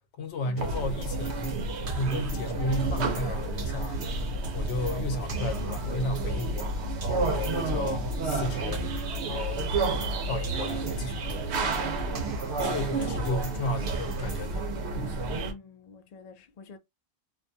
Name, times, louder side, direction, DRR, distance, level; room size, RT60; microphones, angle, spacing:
voice 1, 0.2-1.6 1.9-4.0 4.5-6.7 7.2-8.8 9.3-9.6 10.3-11.4 12.2-14.7 14.9-15.1, left 1 dB, 80° left, 0.9 m, -33 dB
sound 1, 0.6-15.5, right 2 dB, 75° right, 0.9 m, -30 dB
sound 2, 1.0-3.3 3.6-6.7 7.0-10.2 10.4-13.6 13.9-14.7, right 3 dB, 55° right, 1.0 m, -41 dB
voice 2, 7.7-8.0 12.6-13.2 15.3-16.8, left 4 dB, 55° left, 0.4 m, -47 dB
2.5 x 2.2 x 2.6 m
omnidirectional pair, 1.1 m